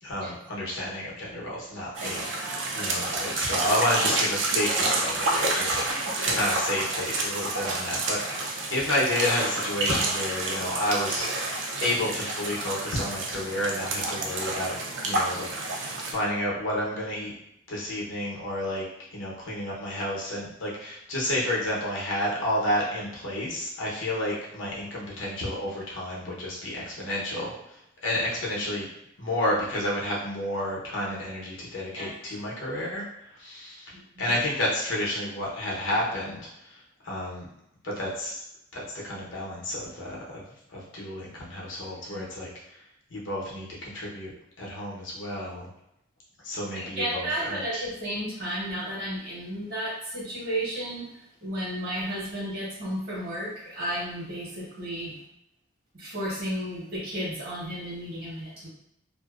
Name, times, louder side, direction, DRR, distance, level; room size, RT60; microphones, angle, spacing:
voice 1, 0.0-14.7 15.0-17.3 17.7-27.8 28.0-28.9 29.2-37.5 37.8-38.4 38.7-40.4 40.7-42.8 43.1-44.3 44.6-45.7 46.4-47.8, left 1 dB, 85° left, -4 dB, 0.8 m, -31 dB
sound 1, 1.9-16.1, right 2 dB, 75° right, 0.4 m, -29 dB
voice 2, 2.0-2.6 5.9-6.3 32.0-32.1 33.9-34.2 42.1-42.2 46.7-55.2 55.9-58.7, right 1 dB, 50° right, -6 dB, 1.1 m, -33 dB
2.6 x 2.0 x 2.3 m, 0.81 s
head